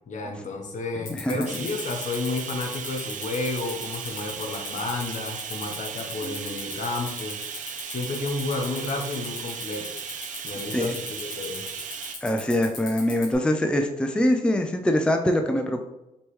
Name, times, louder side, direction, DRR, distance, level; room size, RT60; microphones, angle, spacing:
voice 1, 0.1-7.4 7.9-9.9 10.4-11.6, left 3 dB, 65° left, 3 dB, 0.9 m, -31 dB
sound 1, 1.1-13.3, left 5 dB, 80° left, 1.2 m, -37 dB
voice 2, 1.1-1.5 6.2-6.5 10.7-10.9 12.2-15.8, left 1 dB, 5° left, 5 dB, 0.4 m, -24 dB
Bathtub (filling or washing), 1.5-12.2, right 7 dB, 70° right, 0.5 m, -37 dB
5.3 x 3.0 x 3.1 m, 0.89 s
cardioid pair, 80°, 14 cm